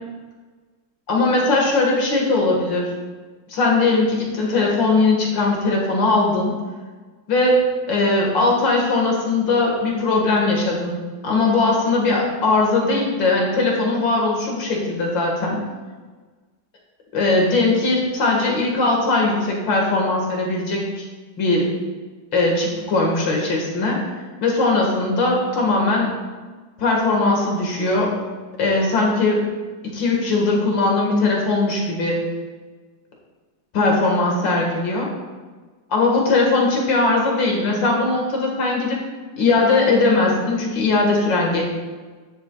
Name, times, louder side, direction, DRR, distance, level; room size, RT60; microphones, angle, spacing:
voice 1, 1.1-2.9 3.5-6.5 7.3-11.0 11.2-15.6 17.1-21.0 21.4-21.7 22.3-24.0 24.4-26.1 26.8-28.1 28.6-29.4 29.9-32.2 33.7-35.1 35.9-39.0 39.4-41.6, left 3 dB, 85° left, -1 dB, 2.4 m, -19 dB
11.5 x 7.1 x 2.3 m, 1.4 s
omnidirectional pair, 2.0 m